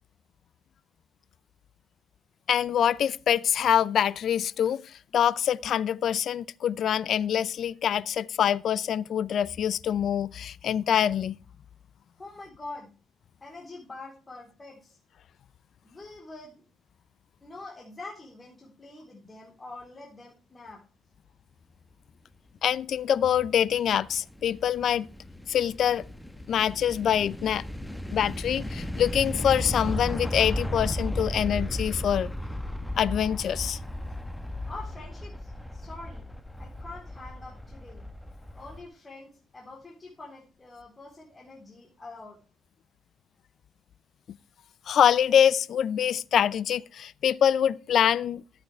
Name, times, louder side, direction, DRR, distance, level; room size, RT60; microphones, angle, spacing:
voice 1, 2.5-11.4 22.6-25.1 25.5-26.0 26.5-27.6 28.1-32.3 33.0-33.8 44.9-48.4, left 9 dB, 65° left, 0.5 m, -25 dB
voice 2, 12.2-12.9 13.4-15.0 15.8-16.6 17.4-20.8 34.7-36.3 36.6-38.0 38.5-42.4, left 2 dB, 25° left, 3.6 m, -45 dB
sound 1, 23.3-38.9, left 1 dB, 5° left, 1.1 m, -35 dB
13.0 x 8.8 x 3.3 m
cardioid pair, 90°, 0 cm